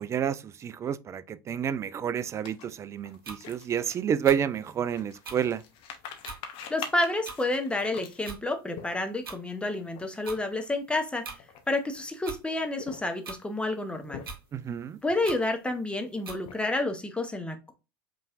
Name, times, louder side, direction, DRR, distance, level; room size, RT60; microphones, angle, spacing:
voice 1, 0.0-5.6 14.5-15.0, right 8 dB, 25° right, 0.4 m, -29 dB
sound 1, 2.4-9.3 9.9-10.0 10.3-10.5 11.2-12.0 12.6-13.4 13.9-14.6 15.2-15.8 16.1-16.9, left 7 dB, 45° left, 0.9 m, -45 dB
sound 2, 3.2-3.4 4.2-4.4 5.2-5.4 6.2-6.4 7.2-7.4 8.2-8.4 9.2-9.4 10.2-10.4 11.2-11.4 12.2-12.4 13.2-13.4 14.2-14.4 15.2-15.4 16.2-16.4, right 4 dB, 70° right, 1.3 m, -40 dB
voice 2, 6.7-11.3 11.7-14.2 15.0-17.7, left 2 dB, 10° left, 0.7 m, -30 dB
5.4 x 3.1 x 2.4 m
figure-of-eight pair, 85°, 12 cm